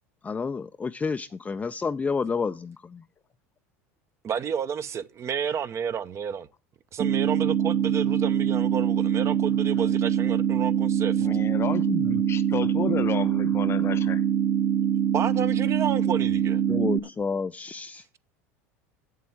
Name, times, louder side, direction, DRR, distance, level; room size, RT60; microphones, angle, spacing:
voice 1, 0.2-3.0 16.7-18.0, left 5 dB, 20° left, 0.5 m, -30 dB
voice 2, 4.2-6.5 6.9-11.3 15.1-16.6, right 7 dB, 35° right, 0.8 m, -30 dB
sound 1, 7.0-17.0, right 9 dB, 55° right, 1.3 m, -24 dB
voice 3, 11.2-14.2, left 7 dB, 35° left, 1.0 m, -31 dB
7.7 x 7.6 x 7.1 m
hypercardioid pair, 90°, 8 cm